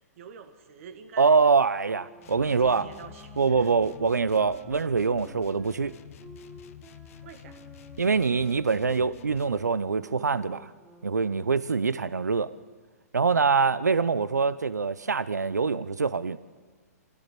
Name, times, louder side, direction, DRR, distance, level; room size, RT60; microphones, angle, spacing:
voice 1, 0.2-1.5 2.3-3.3 3.6-3.7 7.2-7.6, right 7 dB, 55° right, 1.9 m, -47 dB
voice 2, 1.2-2.9 3.4-5.9 8.0-10.7 11.0-12.5 13.1-16.4, right 5 dB, 85° right, 0.8 m, -24 dB
sound 1, 1.9-11.9, right 3 dB, 10° right, 1.4 m, -51 dB
sound 2, 2.2-9.7, left 9 dB, 55° left, 1.2 m, -48 dB
24.0 x 16.0 x 7.6 m
hypercardioid pair, 125°, 9 cm